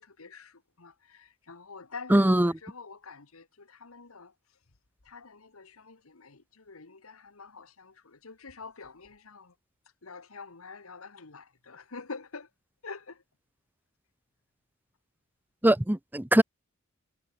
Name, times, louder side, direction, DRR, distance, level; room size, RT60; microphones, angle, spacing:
voice 1, 0.0-4.3 5.0-9.5 10.0-12.5 12.8-13.2, left 4 dB, 75° left, 1.6 m, -46 dB
voice 2, 2.1-2.5 15.6-16.4, right 1 dB, 10° right, 0.7 m, -21 dB
head